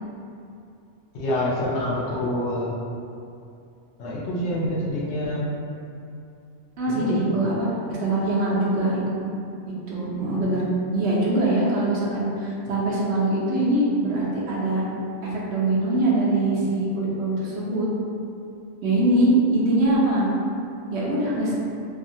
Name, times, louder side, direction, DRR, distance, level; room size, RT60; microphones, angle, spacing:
voice 1, 1.1-2.8 4.0-5.5 6.9-7.4 10.1-10.6, left 1 dB, 70° left, -6 dB, 0.9 m, -27 dB
voice 2, 6.8-7.7 8.0-9.0 9.9-10.6 10.9-14.8 15.2-17.9 18.8-20.3 20.9-21.5, right 2 dB, 70° right, -6 dB, 0.8 m, -23 dB
2.7 x 2.2 x 2.6 m, 2.5 s
omnidirectional pair, 1.2 m